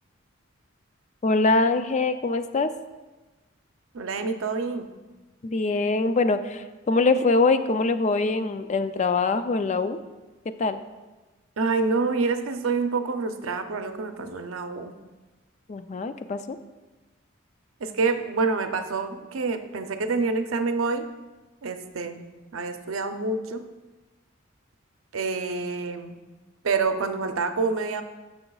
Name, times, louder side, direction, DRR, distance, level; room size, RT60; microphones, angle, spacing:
voice 1, 1.2-2.7 5.4-10.0 10.6-10.8 15.7-16.6, left 3 dB, 35° left, 10 dB, 0.3 m, -23 dB
voice 2, 3.9-4.9 11.6-14.9 17.8-21.1 21.6-22.3 22.5-23.7 25.1-26.2 26.6-28.0, right 4 dB, 90° right, 7 dB, 0.6 m, -27 dB
11.5 x 6.8 x 2.3 m, 1.2 s
head